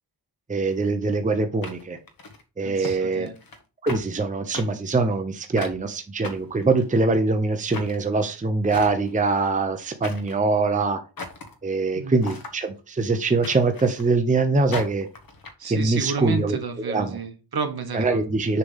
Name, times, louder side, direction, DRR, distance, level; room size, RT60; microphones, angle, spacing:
voice 1, 0.5-2.0 2.6-3.3 3.8-11.0 11.6-15.1 15.7-16.6 16.9-17.2 17.9-18.6, right 3 dB, 20° right, 0.7 m, -23 dB
sound 1, 0.7-0.8 1.6-2.4 2.8-3.0 3.3-3.6 3.9-4.0 4.5-4.7 5.6-5.8 6.2-7.1 7.7-8.0 8.7-9.2 10.0-10.4 11.2-11.5 12.2-12.6 13.4-14.1 14.7-15.5, left 3 dB, 55° left, 1.2 m, -36 dB
voice 2, 2.6-3.3 11.9-12.2 15.6-18.2, right 5 dB, 60° right, 1.2 m, -31 dB
6.8 x 3.4 x 5.5 m
wide cardioid pair, 115°, 42 cm